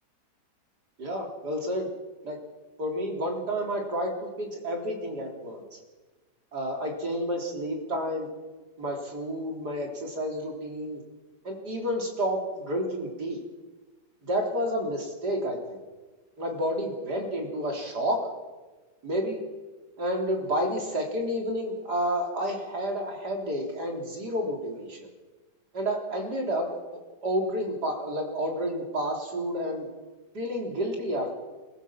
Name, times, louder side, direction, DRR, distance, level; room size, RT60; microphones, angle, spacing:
voice 1, 1.0-1.9 2.2-2.4 2.8-5.8 6.5-8.3 8.8-11.0 11.4-13.4 14.2-15.8 16.4-18.2 19.0-19.4 20.0-25.1 25.7-29.9 30.3-31.3, equal, 75° right, 1 dB, 4.1 m, -30 dB
27.0 x 15.0 x 7.4 m, 1.2 s
omnidirectional pair, 1.8 m